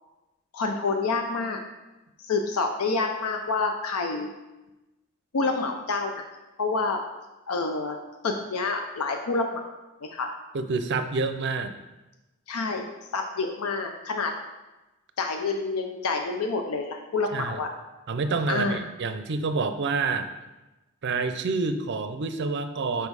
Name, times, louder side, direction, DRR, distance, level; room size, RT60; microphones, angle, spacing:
voice 1, 0.5-1.6 2.2-4.3 5.3-6.2 6.6-7.0 7.5-8.0 8.2-9.6 10.0-10.4 12.5-14.3 15.2-17.7 18.5-18.8, left 3 dB, 90° left, 4 dB, 0.5 m, -28 dB
voice 2, 10.5-11.7 17.3-17.6 18.1-20.3 21.0-23.1, right 4 dB, 55° right, 9 dB, 0.5 m, -28 dB
5.3 x 4.5 x 4.7 m, 1.0 s
head